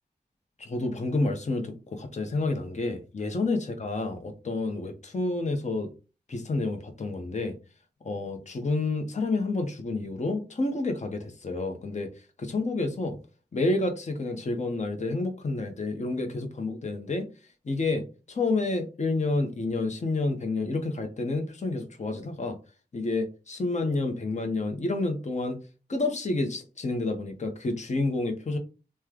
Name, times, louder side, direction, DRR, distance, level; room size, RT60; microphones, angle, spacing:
voice 1, 0.6-5.9 6.3-7.6 8.0-12.1 12.4-13.2 13.5-17.3 17.6-22.6 22.9-25.6 25.9-28.6, left 2 dB, 45° left, 0.8 m, -29 dB
3.1 x 2.2 x 3.6 m
wide cardioid pair, 70°, 16 cm